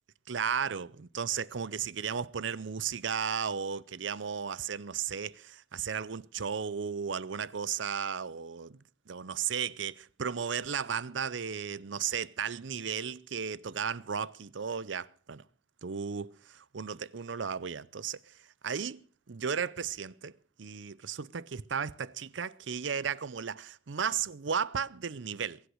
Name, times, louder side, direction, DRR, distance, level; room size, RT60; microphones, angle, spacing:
voice 1, 0.3-8.8 9.1-15.4 15.8-18.3 18.6-19.0 19.3-20.3 20.6-25.6, right 7 dB, 80° right, 0.6 m, -34 dB
22.0 x 8.2 x 6.2 m
head